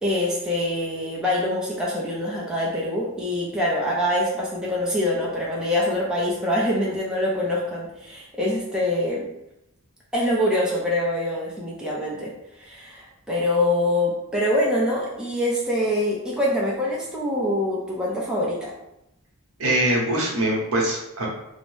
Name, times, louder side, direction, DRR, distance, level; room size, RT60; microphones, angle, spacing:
voice 1, 0.0-9.3 10.1-12.3 12.6-18.7, left 1 dB, 5° right, -5 dB, 0.4 m, -24 dB
voice 2, 19.6-21.3, right 1 dB, 65° right, -2 dB, 0.8 m, -23 dB
2.7 x 2.0 x 3.1 m, 0.86 s
head